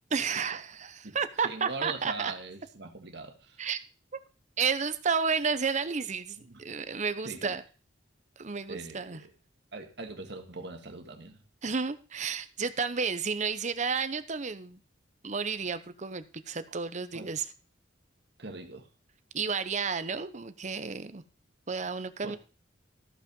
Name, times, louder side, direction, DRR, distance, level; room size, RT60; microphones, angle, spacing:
voice 1, 0.1-2.3 3.6-3.8 4.6-7.6 8.4-9.2 11.6-14.8 15.2-17.5 19.3-21.2 21.7-22.4, right 5 dB, 40° right, 12 dB, 0.8 m, -31 dB
voice 2, 1.4-3.6 6.4-6.6 7.2-7.6 8.7-9.3 9.7-11.4 17.1-17.3 18.4-18.9 22.2-22.4, right 3 dB, 65° right, 4 dB, 1.8 m, -41 dB
14.0 x 5.7 x 5.4 m, 0.36 s
head